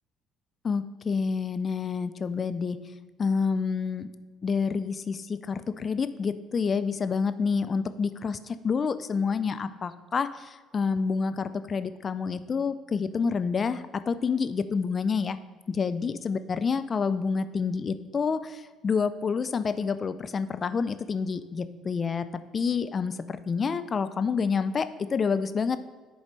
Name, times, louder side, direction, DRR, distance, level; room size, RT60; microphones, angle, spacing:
voice 1, 0.6-2.8 3.2-4.1 4.4-15.4 15.7-22.2 22.5-25.8, left 5 dB, 40° left, 12 dB, 0.4 m, -28 dB
10.0 x 3.9 x 3.2 m, 1.4 s
hypercardioid pair, 55°, 0 cm